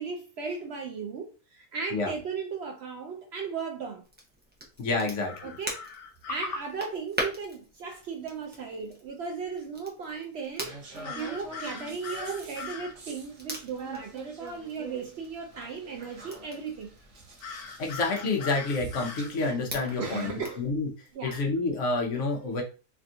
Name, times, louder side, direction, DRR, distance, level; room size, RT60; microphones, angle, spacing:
voice 1, 0.0-4.0 5.4-5.8 6.3-16.9 20.0-20.7 21.1-21.4, right 5 dB, 70° right, 0.6 m, -36 dB
Crackle, 4.0-20.7, right 1 dB, 15° right, 0.3 m, -43 dB
voice 2, 4.8-5.5 17.8-20.3 20.6-20.9 21.2-22.6, left 3 dB, 60° left, 1.1 m, -28 dB
sound 1, 5.3-6.6 11.0-12.9 17.4-19.3, left 5 dB, 85° left, 1.2 m, -41 dB
sound 2, 10.6-20.4, right 3 dB, 55° right, 1.1 m, -45 dB
3.4 x 2.4 x 2.6 m
omnidirectional pair, 1.6 m